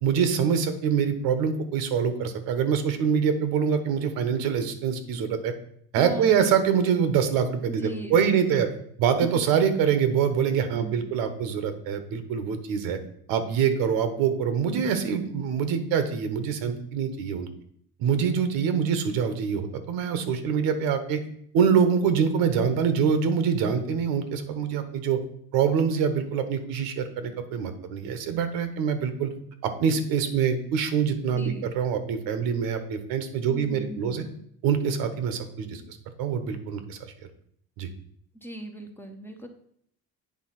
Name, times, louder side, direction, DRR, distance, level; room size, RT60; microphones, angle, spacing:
voice 1, 0.0-5.5 5.9-8.7 9.0-13.0 13.3-17.5 18.0-21.2 21.5-25.2 25.5-29.3 29.6-34.2 34.6-35.8 36.2-37.0 37.8-37.9, right 7 dB, 85° right, 9 dB, 1.1 m, -25 dB
voice 2, 6.0-6.6 7.7-8.6 10.7-11.2 31.3-31.7 33.5-34.4 38.3-39.5, right 1 dB, 5° left, 4 dB, 0.7 m, -40 dB
8.7 x 3.5 x 5.8 m, 0.67 s
cardioid pair, 145°, 35 cm